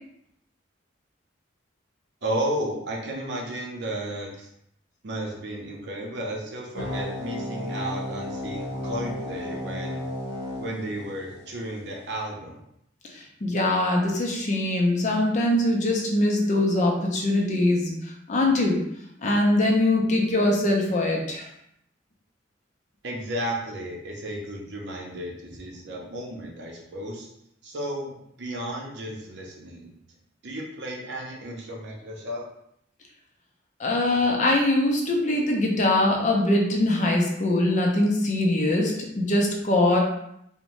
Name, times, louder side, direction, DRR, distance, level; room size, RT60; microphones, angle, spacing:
voice 1, 2.2-4.5 5.0-10.0 10.6-12.6 23.0-27.3 27.6-29.9 30.4-32.5, right 1 dB, 60° right, -1 dB, 0.6 m, -33 dB
sound 1, 6.7-11.7, left 1 dB, 80° left, 0.7 m, -33 dB
voice 2, 13.1-17.9 18.3-18.8 19.2-21.5 33.8-40.0, left 1 dB, 40° left, 0 dB, 0.5 m, -22 dB
2.6 x 2.1 x 3.0 m, 0.75 s
head